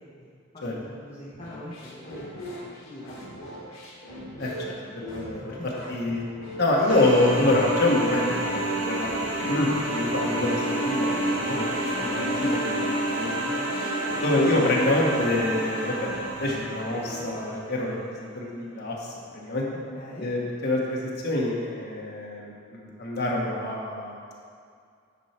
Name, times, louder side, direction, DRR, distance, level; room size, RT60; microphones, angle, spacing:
voice 1, 0.5-2.3 2.6-3.2 4.5-4.8 5.3-6.0 14.2-14.4 19.9-20.3, left 1 dB, 25° left, -9 dB, 1.2 m, -43 dB
sound 1, 1.3-17.3, equal, 75° left, 1.7 m, -41 dB
voice 2, 4.4-4.7 5.1-5.4 5.9-6.2 6.6-8.4 8.8-11.7 12.0-13.3 14.2-19.6 20.2-22.5 22.8-24.1, left 2 dB, 50° left, -3 dB, 1.3 m, -26 dB
sound 2, 6.9-17.7, right 1 dB, 70° right, 1.4 m, -29 dB
9.8 x 4.7 x 4.4 m, 2.3 s
head